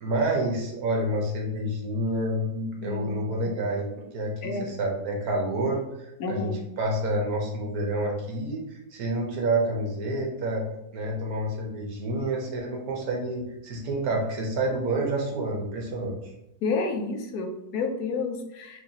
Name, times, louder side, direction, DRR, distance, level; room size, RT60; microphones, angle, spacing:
voice 1, 0.0-3.9 4.1-6.5 6.8-10.7 10.9-16.1, right 1 dB, 70° right, 0 dB, 1.4 m, -28 dB
voice 2, 2.8-3.2 3.4-3.5 4.4-4.7 6.2-6.5 16.6-18.8, left 4 dB, 75° left, 4 dB, 1.2 m, -30 dB
6.3 x 2.7 x 2.8 m, 0.86 s
omnidirectional pair, 1.7 m